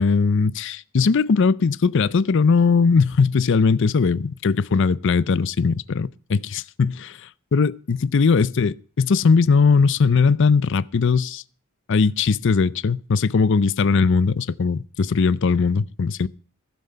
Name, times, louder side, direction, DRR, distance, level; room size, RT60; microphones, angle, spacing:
voice 1, 0.0-11.4 11.9-16.3, left 5 dB, 60° left, 0.5 m, -19 dB
15.0 x 7.6 x 5.6 m
head